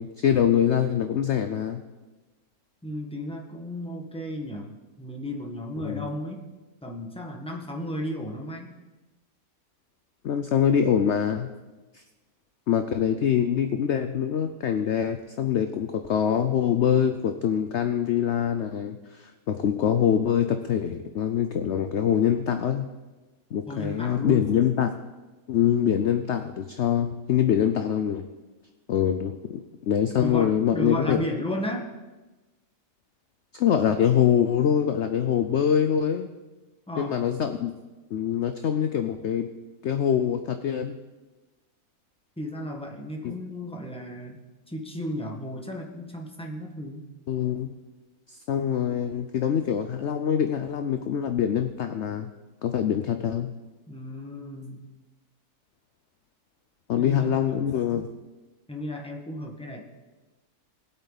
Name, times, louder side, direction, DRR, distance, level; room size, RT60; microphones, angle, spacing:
voice 1, 0.0-1.8 5.8-6.1 10.2-11.5 11.9-12.0 12.7-22.9 23.5-24.9 25.5-28.3 28.9-31.2 33.5-36.3 37.0-37.7 38.1-39.5 39.8-41.0 43.2-43.3 47.3-47.7 48.3-52.3 52.6-53.5 56.9-58.1, left 9 dB, 60° left, 8 dB, 0.8 m, -24 dB
voice 2, 2.8-6.5 6.8-8.7 23.7-24.5 30.2-31.9 36.9-37.2 42.4-44.4 44.7-47.1 53.9-54.9 57.0-57.4 58.7-59.8, left 1 dB, 5° left, 0 dB, 1.4 m, -34 dB
21.0 x 8.2 x 4.1 m, 1.2 s
omnidirectional pair, 1.6 m